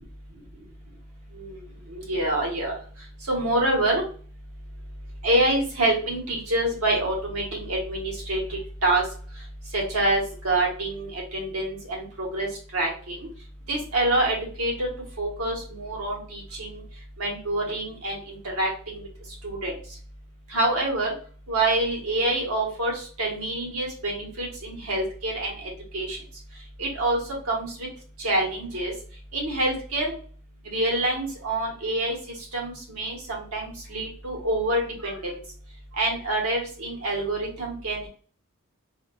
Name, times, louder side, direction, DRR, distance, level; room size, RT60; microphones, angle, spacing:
voice 1, 1.9-2.7 3.3-4.0 5.2-9.0 9.7-13.2 13.7-14.9 15.2-16.8 17.2-19.0 19.4-19.7 20.5-21.1 21.5-26.2 26.8-27.2 27.5-27.9 28.2-28.9 29.3-30.1 30.7-32.1 32.5-35.2 36.0-38.1, right 1 dB, 75° right, -1 dB, 1.2 m, -26 dB
4.1 x 2.3 x 2.4 m, 0.43 s
head